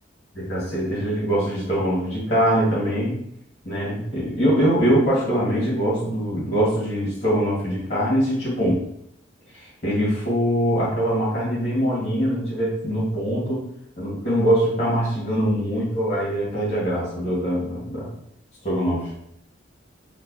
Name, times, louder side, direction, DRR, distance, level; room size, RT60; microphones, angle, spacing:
voice 1, 0.4-3.2 3.6-8.8 9.5-13.6 14.0-18.1 18.6-19.1, equal, 35° left, -7 dB, 1.4 m, -23 dB
3.2 x 2.2 x 3.6 m, 0.74 s
head